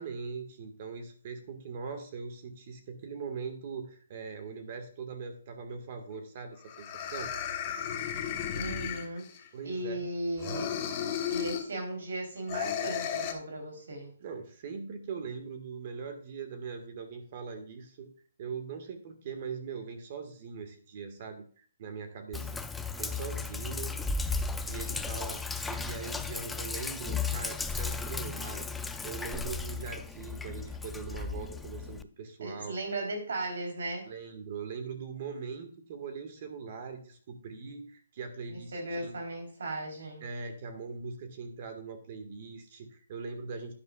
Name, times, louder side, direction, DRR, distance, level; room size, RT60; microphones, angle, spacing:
voice 1, 0.0-7.3 9.5-10.0 14.2-18.1 18.4-23.9 24.6-32.8 34.0-39.1 40.2-43.7, right 5 dB, 35° right, 7 dB, 1.6 m, -41 dB
sound 1, 6.1-6.2 6.7-9.5 10.4-11.7 12.5-13.3, left 8 dB, 25° left, 1.2 m, -34 dB
voice 2, 8.5-9.3 9.6-10.7 11.3-14.1 32.4-34.1 38.5-40.2, right 1 dB, 75° right, 2 dB, 3.4 m, -36 dB
Sink (filling or washing), 22.3-32.0, left 4 dB, 5° left, 0.4 m, -35 dB
11.0 x 10.0 x 2.4 m, 0.43 s
hypercardioid pair, 165°, 0 cm